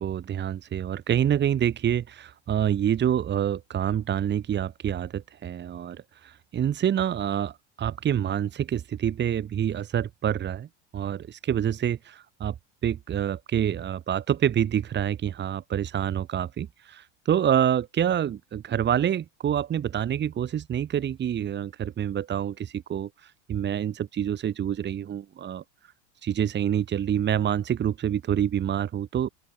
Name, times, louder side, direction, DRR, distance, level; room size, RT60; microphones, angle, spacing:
voice 1, 0.0-10.7 10.9-12.5 12.8-25.6 26.2-29.3, right 9 dB, 30° right, 2.6 m, -27 dB
open air
supercardioid pair, 115°, 35 cm